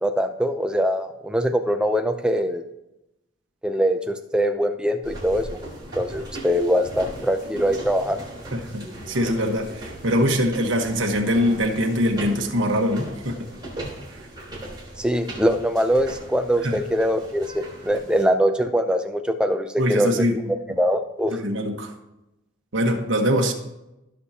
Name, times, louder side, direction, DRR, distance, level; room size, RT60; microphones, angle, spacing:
voice 1, 0.0-2.6 3.6-5.5 6.0-8.2 15.0-20.1 20.8-21.4, equal, 5° right, 6 dB, 0.5 m, -22 dB
sound 1, 5.0-18.3, right 1 dB, 20° right, 3.9 m, -38 dB
voice 2, 8.5-13.4 14.1-14.2 16.6-16.8 19.8-20.4 20.7-20.8 21.3-21.9 22.7-23.5, equal, 65° right, 2 dB, 1.3 m, -23 dB
16.5 x 6.4 x 2.9 m, 0.91 s
head